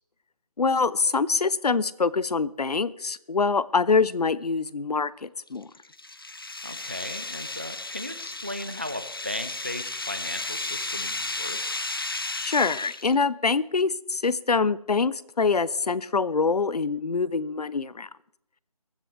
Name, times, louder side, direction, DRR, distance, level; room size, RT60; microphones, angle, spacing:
voice 1, 0.6-5.7 12.4-18.1, left 4 dB, 90° left, 19 dB, 0.7 m, -25 dB
sound 1, 5.5-13.2, left 2 dB, 35° left, 0.5 m, -34 dB
voice 2, 6.6-11.9, left 1 dB, 20° right, 12 dB, 0.5 m, -37 dB
23.0 x 10.5 x 3.3 m, 0.79 s
figure-of-eight pair, 175°, 20 cm